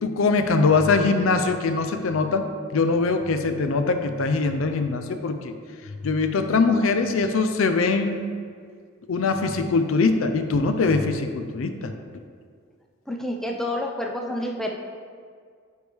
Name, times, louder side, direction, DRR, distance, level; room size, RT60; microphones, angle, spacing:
voice 1, 0.0-2.4 2.7-5.5 6.0-8.3 9.1-11.9, left 4 dB, 75° left, 7 dB, 0.4 m, -22 dB
voice 2, 13.1-14.7, left 1 dB, ahead, 1 dB, 0.4 m, -28 dB
9.3 x 3.2 x 3.4 m, 2.1 s
head